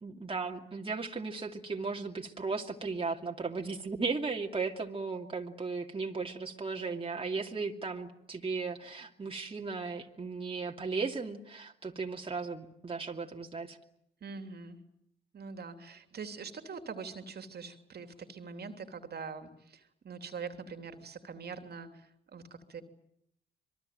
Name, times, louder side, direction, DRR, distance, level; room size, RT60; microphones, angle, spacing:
voice 1, 0.0-13.8, right 4 dB, 25° right, 1 dB, 2.7 m, -36 dB
voice 2, 14.2-14.8 15.3-22.8, right 5 dB, 50° right, 7 dB, 3.0 m, -43 dB
26.0 x 22.5 x 9.3 m, 0.76 s
hypercardioid pair, 50°, 21 cm